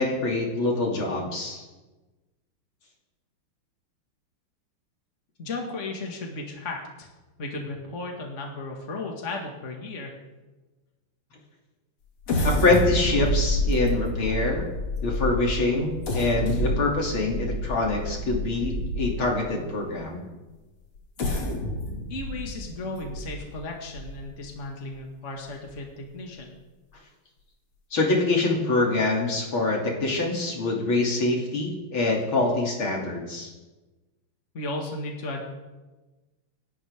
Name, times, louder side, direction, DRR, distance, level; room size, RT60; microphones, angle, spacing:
voice 1, 0.0-1.6 12.4-14.7 15.0-20.2 27.9-33.5, left 2 dB, 70° left, -1 dB, 3.6 m, -25 dB
voice 2, 5.4-7.1 7.4-10.1 22.1-26.5 34.5-35.4, left 2 dB, 35° left, 1 dB, 2.2 m, -35 dB
sound 1, 12.2-19.4 20.0-20.1 21.0-24.5 25.0-25.1 25.5-25.7, equal, 90° left, 3.3 m, -29 dB
27.0 x 12.5 x 3.7 m, 1.2 s
omnidirectional pair, 2.4 m